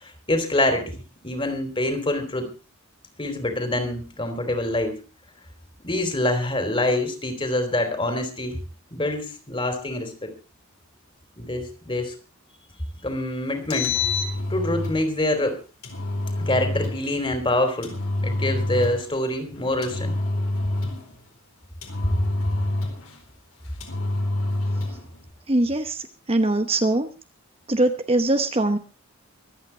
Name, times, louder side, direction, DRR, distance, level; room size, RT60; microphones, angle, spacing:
voice 1, 0.0-0.9 1.2-2.5 3.2-4.9 5.8-8.6 8.9-10.3 11.4-12.1 13.0-14.0 14.5-15.6 16.4-17.9 18.2-20.2, left 1 dB, 25° left, 8 dB, 3.1 m, -25 dB
Engine, 13.5-15.0 15.8-17.0 17.8-19.1 19.8-21.1 21.8-23.2 23.8-25.0, left 2 dB, 75° left, 4.3 m, -27 dB
voice 2, 25.5-27.1 27.7-28.8, right 2 dB, 25° right, 8 dB, 0.9 m, -22 dB
24.5 x 8.8 x 4.4 m, 0.33 s
head